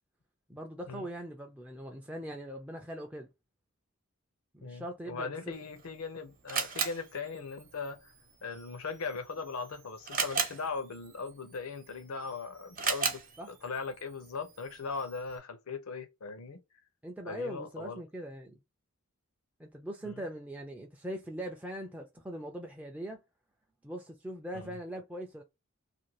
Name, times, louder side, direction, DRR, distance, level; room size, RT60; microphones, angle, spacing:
voice 1, 0.5-3.3 4.5-5.5 13.4-13.5 17.0-18.6 19.6-23.2 23.8-25.4, right 1 dB, 5° right, 0.3 m, -41 dB
voice 2, 4.6-8.1 8.4-13.2 13.5-16.6 17.2-18.0 20.0-20.2 24.5-24.8, left 4 dB, 85° left, 0.7 m, -39 dB
Camera, 5.5-15.4, right 6 dB, 40° right, 0.7 m, -38 dB
2.6 x 2.6 x 2.9 m
head